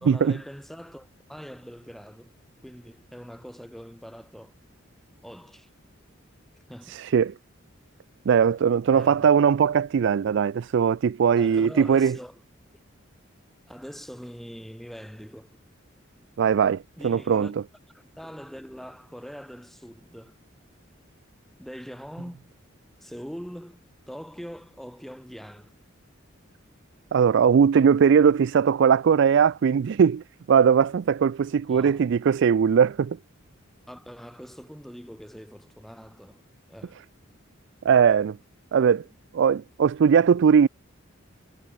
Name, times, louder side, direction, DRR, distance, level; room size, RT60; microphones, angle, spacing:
voice 1, 0.0-2.3 2.6-4.5 5.2-5.7 6.7-7.0 8.9-9.3 11.4-12.4 13.7-15.6 17.0-17.5 17.9-20.4 21.6-22.5 23.0-25.7 31.7-32.1 33.9-36.4 36.7-37.0, equal, ahead, 2.7 m, -42 dB
voice 2, 6.9-7.3 8.3-12.2 16.4-17.5 27.1-33.2 37.8-38.4 38.7-39.0 39.3-40.7, right 7 dB, 60° right, 0.3 m, -20 dB
head